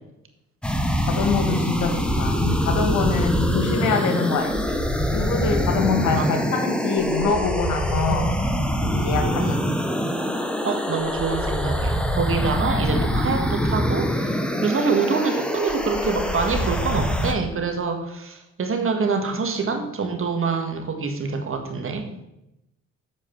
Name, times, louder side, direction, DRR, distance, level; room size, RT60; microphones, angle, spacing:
sound 1, 0.6-17.3, equal, 5° left, 1.0 m, -24 dB
voice 1, 1.1-4.6 5.1-8.3 8.8-9.6, left 4 dB, 80° left, 5 dB, 1.8 m, -24 dB
voice 2, 8.1-8.4 9.4-9.6 10.6-22.0, right 4 dB, 45° right, 4 dB, 1.7 m, -26 dB
7.6 x 4.9 x 7.2 m, 0.89 s
cardioid pair, 90°, 30 cm